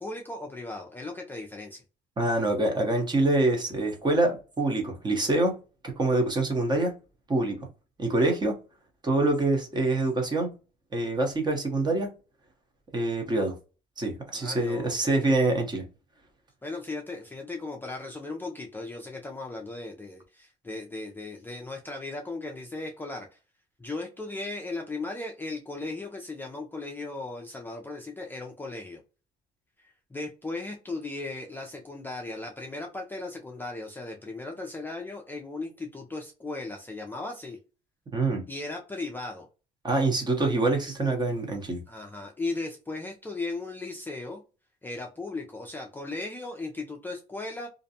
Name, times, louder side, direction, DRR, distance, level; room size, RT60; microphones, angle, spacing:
voice 1, 0.0-1.8 14.3-15.5 16.6-23.4 23.8-29.0 29.8-37.6 38.5-39.5 41.9-44.4 44.8-47.7, left 2 dB, 10° left, 1 dB, 0.4 m, -37 dB
voice 2, 2.2-5.5 5.8-6.9 7.3-7.6 8.0-8.5 9.0-10.5 10.9-12.1 12.9-13.5 14.0-15.8 38.1-38.4 39.8-41.8, right 2 dB, 25° right, 3 dB, 0.8 m, -25 dB
2.5 x 2.1 x 2.7 m, 0.32 s
cardioid pair, 110°, 17 cm